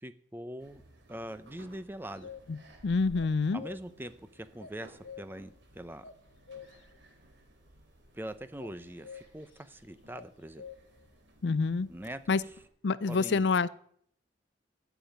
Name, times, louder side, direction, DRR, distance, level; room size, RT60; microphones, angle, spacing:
voice 1, 0.0-0.8 1.1-2.3 3.5-6.0 8.1-10.6 11.9-12.2 13.1-13.4, right 1 dB, 10° right, 12 dB, 0.7 m, -42 dB
sound 1, 0.6-12.7, right 1 dB, 80° right, 3.0 m, -58 dB
sound 2, 2.1-2.7 3.2-4.1 4.6-5.5 6.0-7.0 8.6-9.6 10.1-11.1, left 6 dB, 85° left, 1.1 m, -48 dB
voice 2, 2.8-3.6 11.4-11.9 12.3-12.4 12.8-13.7, left 4 dB, 70° left, 18 dB, 0.5 m, -27 dB
11.5 x 7.0 x 9.3 m, 0.65 s
head